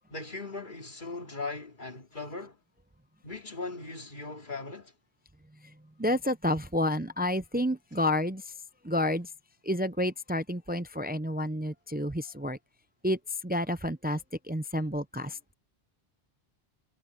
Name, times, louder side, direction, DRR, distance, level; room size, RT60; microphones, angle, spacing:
voice 1, 0.1-2.6 3.2-4.9, left 3 dB, 50° left, 2.8 m, -39 dB
voice 2, 6.0-8.5 8.8-9.3 9.6-12.6 13.0-14.2 14.5-15.4, left 1 dB, 15° right, 0.4 m, -30 dB
omnidirectional pair, 1.1 m